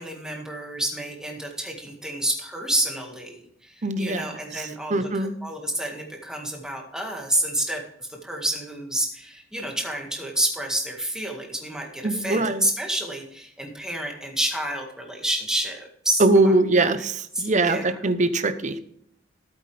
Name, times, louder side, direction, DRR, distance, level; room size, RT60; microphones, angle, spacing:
voice 1, 0.0-17.0 17.3-18.0, right 1 dB, 5° right, 1 dB, 1.9 m, -29 dB
voice 2, 3.8-4.3 4.9-5.3 12.0-12.6 16.2-18.8, right 2 dB, 40° right, 11 dB, 0.8 m, -21 dB
13.0 x 8.2 x 3.4 m, 0.67 s
head